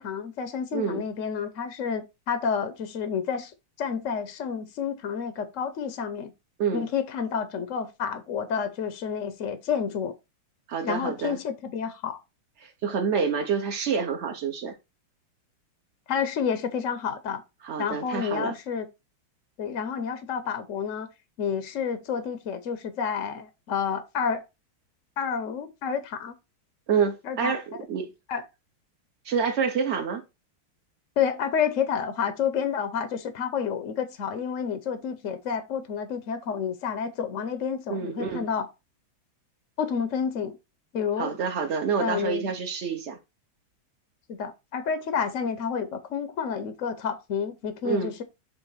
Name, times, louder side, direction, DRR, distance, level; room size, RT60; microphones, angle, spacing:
voice 1, 0.0-3.5 3.8-6.3 6.7-10.1 10.8-12.2 16.1-17.4 17.8-18.9 19.6-21.1 21.4-24.4 25.2-26.3 27.2-27.8 28.3-28.4 31.2-38.7 39.8-40.6 40.9-41.3 42.0-42.5 44.3-48.2, left 7 dB, 65° left, 0.7 m, -29 dB
voice 2, 0.7-1.0 6.6-6.8 10.7-11.4 12.6-14.7 17.6-18.5 26.9-28.1 29.2-30.2 37.9-38.5 41.2-43.2 47.8-48.1, right 6 dB, 65° right, 0.6 m, -27 dB
6.8 x 2.6 x 5.6 m
omnidirectional pair, 2.3 m